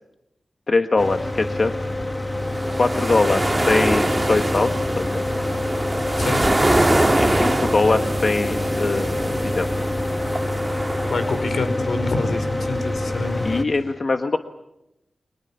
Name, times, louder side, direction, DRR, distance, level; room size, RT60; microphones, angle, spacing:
voice 1, 0.7-1.7 2.8-5.2 7.2-9.7 13.4-14.4, left 3 dB, 50° left, 6 dB, 1.4 m, -22 dB
Mechanical fan, 1.0-13.6, left 1 dB, 15° left, 1.8 m, -26 dB
sound 1, 2.4-11.6, right 1 dB, 15° right, 2.1 m, -24 dB
voice 2, 11.0-13.4, left 3 dB, 80° left, 9 dB, 4.6 m, -26 dB
30.0 x 24.5 x 7.1 m, 0.89 s
wide cardioid pair, 105°, 0 cm